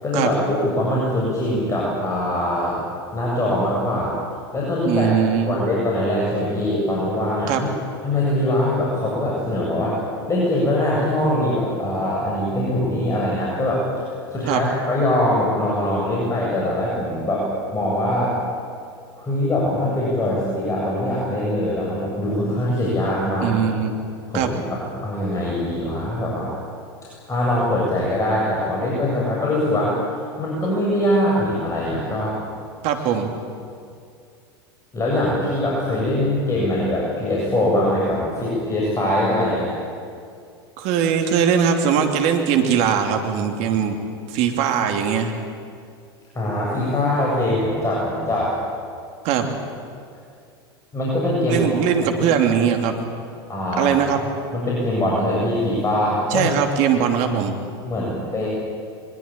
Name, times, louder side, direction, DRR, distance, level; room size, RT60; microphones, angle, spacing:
voice 1, 0.0-2.8 3.1-4.2 4.5-7.7 8.0-10.0 10.3-18.3 19.2-23.6 24.3-26.5 27.3-30.0 30.4-32.4 34.9-39.7 46.3-48.5 50.9-52.3 53.5-54.3 54.5-56.5 57.9-58.5, left 1 dB, 20° left, -5 dB, 7.7 m, -22 dB
voice 2, 4.8-5.6 7.5-7.6 14.5-14.6 23.4-23.9 24.3-24.5 32.8-33.3 40.8-44.0 44.3-45.3 49.2-49.5 51.5-52.9 53.8-54.2 56.3-57.6, right 8 dB, 55° right, 5 dB, 2.9 m, -20 dB
23.5 x 22.0 x 8.9 m, 2.4 s
hypercardioid pair, 85°, 14 cm